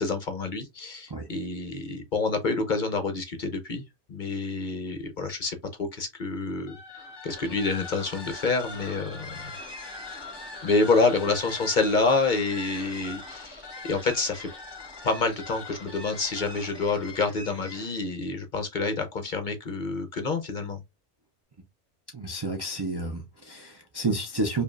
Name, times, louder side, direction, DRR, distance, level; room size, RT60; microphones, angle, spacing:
voice 1, 0.0-3.8 4.1-6.8 7.2-9.3 10.1-10.2 10.6-14.5 15.0-20.8, left 3 dB, 50° left, 0.7 m, -27 dB
sound 1, 6.6-18.0, left 3 dB, 20° left, 1.2 m, -41 dB
voice 2, 22.1-24.6, right 2 dB, 30° right, 0.5 m, -30 dB
5.0 x 2.5 x 2.4 m
omnidirectional pair, 1.2 m